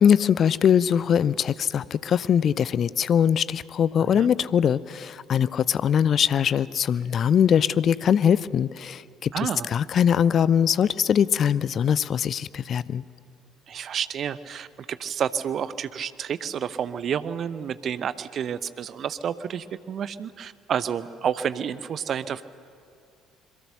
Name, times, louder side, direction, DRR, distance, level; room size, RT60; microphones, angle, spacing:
voice 1, 0.0-13.0, left 8 dB, 45° left, 19 dB, 0.5 m, -22 dB
voice 2, 9.3-9.7 13.7-22.4, right 8 dB, 45° right, 15 dB, 0.8 m, -30 dB
26.5 x 22.5 x 6.6 m, 2.4 s
figure-of-eight pair, 50°, 0 cm